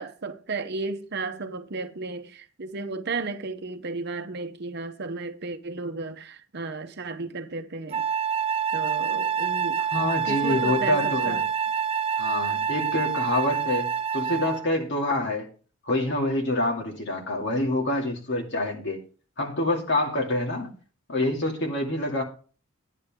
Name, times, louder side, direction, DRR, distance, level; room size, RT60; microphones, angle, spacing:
voice 1, 0.0-8.1 8.7-9.8 10.2-11.4, right 3 dB, 50° right, 0.8 m, -34 dB
Wind instrument woodwind instrument, 7.9-14.7, right 7 dB, 25° right, 0.4 m, -27 dB
voice 2, 9.9-11.4 12.2-15.5 15.9-19.0 19.4-20.7 21.1-22.2, left 1 dB, 55° left, 2.5 m, -26 dB
11.0 x 10.0 x 3.6 m
head